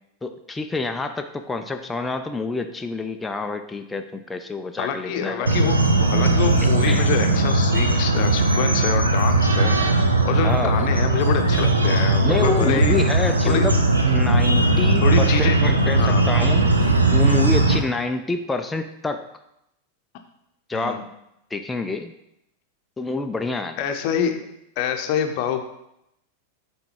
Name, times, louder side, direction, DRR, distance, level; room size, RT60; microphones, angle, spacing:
voice 1, 0.2-5.5 6.9-7.1 10.4-10.9 12.2-13.8 14.1-19.3 20.7-21.1 21.5-22.1 23.0-23.8, left 3 dB, 10° left, 6 dB, 0.4 m, -27 dB
voice 2, 4.8-9.7 10.2-13.0 13.5-13.7 15.0-15.6 16.0-16.2 20.7-21.0 23.8-24.5 24.8-25.6, left 8 dB, 45° left, 6 dB, 0.7 m, -26 dB
sound 1, 5.5-17.8, right 2 dB, 80° right, 0.7 m, -19 dB
7.6 x 3.6 x 4.4 m, 0.82 s
figure-of-eight pair, 90°, 0 cm